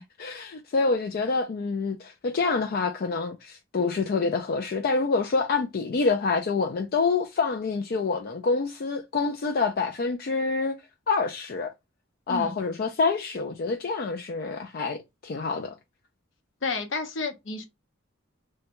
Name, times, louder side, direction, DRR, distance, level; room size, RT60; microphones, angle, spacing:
voice 1, 0.0-10.8 11.1-11.7 12.3-15.7, left 4 dB, 50° left, 0.4 m, -27 dB
voice 2, 16.6-17.7, left 4 dB, 65° left, 0.8 m, -31 dB
3.4 x 2.2 x 2.9 m
head